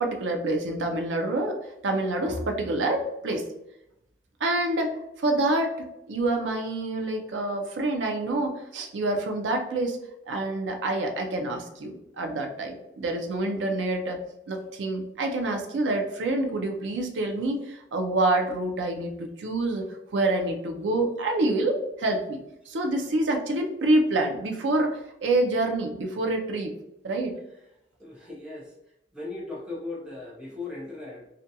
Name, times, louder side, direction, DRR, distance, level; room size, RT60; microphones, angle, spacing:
voice 1, 0.0-3.4 4.4-10.0 10.3-14.2 14.5-19.9 20.1-22.4 22.7-26.7 27.0-27.3, right 2 dB, 85° right, 3 dB, 0.5 m, -27 dB
voice 2, 28.0-28.7 29.1-31.3, left 3 dB, 5° right, -4 dB, 0.6 m, -38 dB
2.4 x 2.2 x 2.7 m, 0.82 s
head